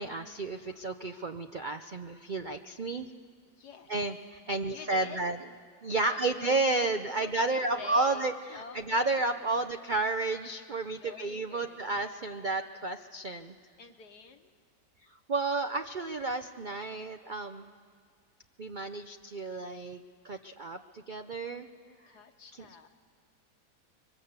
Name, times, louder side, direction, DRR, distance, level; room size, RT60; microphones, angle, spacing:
voice 1, 0.0-3.1 3.9-5.4 5.8-13.5 15.3-17.7 18.6-20.0 20.2-21.7 22.5-22.6, right 3 dB, 60° right, 7 dB, 0.5 m, -32 dB
voice 2, 3.6-3.9 4.5-5.2 6.0-6.9 7.1-8.3 8.5-9.7 10.9-11.8 13.8-14.5 21.5-22.9, left 6 dB, 65° left, 6 dB, 1.9 m, -48 dB
26.5 x 23.5 x 8.1 m, 2.1 s
omnidirectional pair, 1.9 m